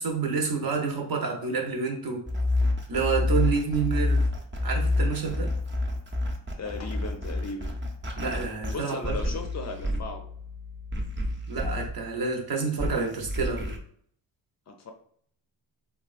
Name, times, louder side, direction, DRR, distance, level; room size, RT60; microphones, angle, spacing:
voice 1, 0.0-2.2 2.9-4.3 4.6-5.5 8.2-9.2 11.5-13.8, right 5 dB, 55° right, 1 dB, 0.8 m, -28 dB
sound 1, 2.3-12.4 12.8-13.8, left 2 dB, 25° right, 0.6 m, -28 dB
voice 2, 6.6-7.7 8.6-10.2 14.7-14.9, left 3 dB, 40° left, 4 dB, 0.5 m, -36 dB
3.4 x 2.2 x 2.4 m, 0.63 s
cardioid pair, 95°, 42 cm